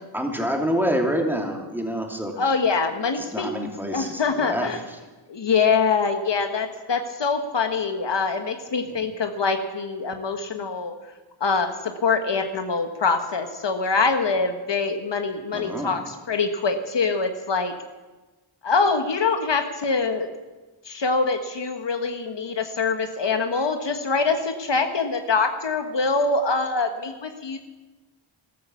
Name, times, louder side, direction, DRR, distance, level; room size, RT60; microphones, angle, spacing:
voice 1, 0.1-2.4 3.2-5.0 8.9-9.0 15.5-16.0, equal, 5° right, 1 dB, 2.7 m, -27 dB
voice 2, 2.4-3.5 3.9-4.8 5.3-11.0 11.4-17.7 18.6-20.3 20.8-27.6, left 4 dB, 65° left, 6 dB, 1.4 m, -24 dB
13.0 x 12.5 x 7.2 m, 1.2 s
cardioid pair, 60°, 46 cm